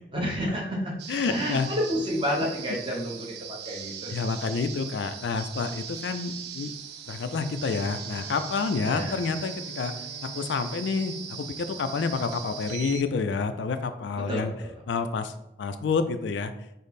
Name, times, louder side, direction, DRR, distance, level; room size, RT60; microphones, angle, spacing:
voice 1, 0.1-3.3 3.6-4.1 8.8-9.2 14.3-14.7, equal, 25° right, -3 dB, 0.9 m, -30 dB
sound 1, 1.0-13.0, right 7 dB, 65° right, 0.4 m, -40 dB
voice 2, 1.1-1.7 4.1-6.7 7.1-9.9 10.2-14.5 14.9-16.5, left 4 dB, 75° left, 10 dB, 0.3 m, -29 dB
Bowed string instrument, 7.0-12.2, left 2 dB, 5° left, 0.6 m, -50 dB
5.1 x 2.0 x 4.0 m, 0.89 s
head